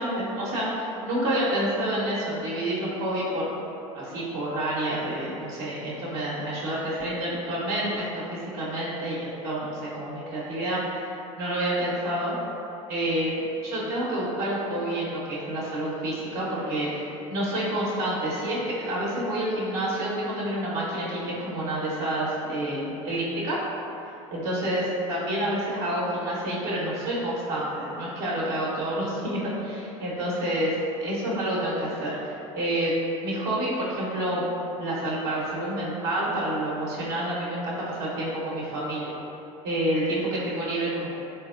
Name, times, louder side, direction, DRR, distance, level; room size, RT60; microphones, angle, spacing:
voice 1, 0.0-3.5 3.9-11.1 11.4-12.3 12.9-23.6 24.3-32.9 33.2-34.5 34.8-39.1 39.6-41.2, right 1 dB, 65° right, -7 dB, 0.9 m, -28 dB
3.3 x 2.9 x 2.5 m, 2.8 s
hypercardioid pair, 85°, 18 cm